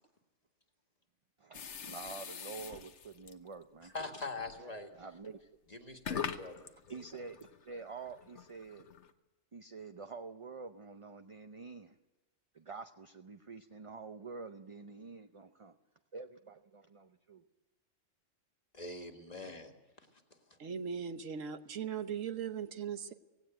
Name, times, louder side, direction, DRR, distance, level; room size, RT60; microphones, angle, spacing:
voice 1, 1.4-3.9 4.9-5.4 6.9-8.9 9.5-12.0 12.5-15.8 16.1-17.4, right 4 dB, 35° right, 0.6 m, -47 dB
sound 1, 1.5-3.5 4.4-4.6 5.2-5.3 5.9-9.1, left 7 dB, 65° left, 1.3 m, -43 dB
voice 2, 3.9-4.9 5.7-7.0 18.7-20.2 20.5-20.6, left 3 dB, 30° left, 1.9 m, -44 dB
voice 3, 20.6-23.1, right 7 dB, 85° right, 1.5 m, -39 dB
17.5 x 17.0 x 9.1 m
omnidirectional pair, 1.3 m